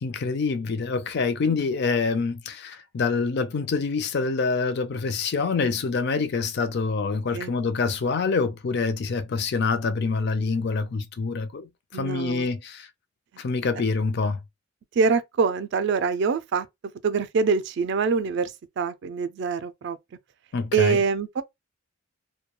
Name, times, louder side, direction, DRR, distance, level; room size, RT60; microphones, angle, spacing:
voice 1, 0.0-12.9 13.4-14.4 20.5-21.0, left 4 dB, 55° left, 0.4 m, -26 dB
voice 2, 11.9-12.5 15.0-16.7 17.0-20.0 20.7-21.4, right 5 dB, 60° right, 0.3 m, -25 dB
2.2 x 2.2 x 2.9 m
head